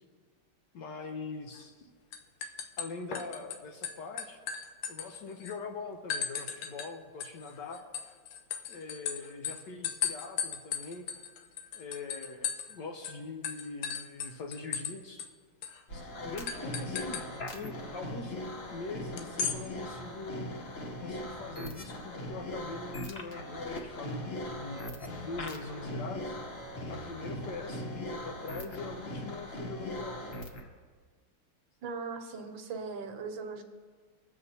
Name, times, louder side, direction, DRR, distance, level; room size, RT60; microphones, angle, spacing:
voice 1, 0.7-1.9 2.8-4.4 4.9-7.8 8.7-11.0 11.7-15.3 15.9-17.2 17.5-18.4 18.7-20.5 21.0-24.8 25.2-26.4 26.9-30.2, left 4 dB, 65° left, 3 dB, 1.2 m, -42 dB
sound 1, 1.6-1.8 2.1-3.6 3.8-5.5 6.1-6.9 7.2-12.8 13.0-13.2 13.4-14.9 15.2-15.3 15.6-15.8 16.5-17.3 19.2-19.6, left 7 dB, 80° left, 1.6 m, -36 dB
sound 2, 15.9-30.7, left 1 dB, 45° left, 0.8 m, -40 dB
voice 2, 31.8-33.6, right 4 dB, 70° right, 5 dB, 1.5 m, -39 dB
22.0 x 7.8 x 2.8 m, 1.5 s
omnidirectional pair, 2.3 m